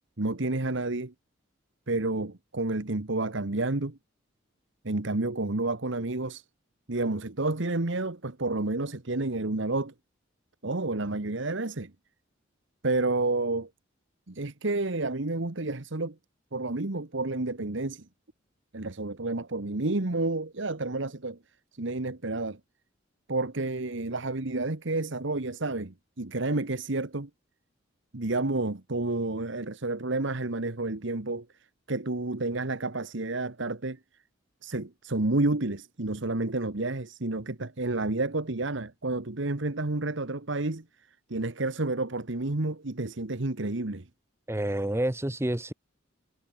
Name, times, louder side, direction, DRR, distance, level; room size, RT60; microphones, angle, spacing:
voice 1, 0.2-1.1 1.9-4.0 4.8-6.4 6.9-9.9 10.6-11.9 12.8-13.7 14.3-16.2 16.5-18.0 18.7-21.4 21.7-22.6 23.3-27.3 28.1-31.5 31.9-34.0 34.6-40.8 41.3-44.1, right 2 dB, 65° right, 1.4 m, -30 dB
voice 2, 44.5-45.7, right 1 dB, 15° right, 1.0 m, -28 dB
head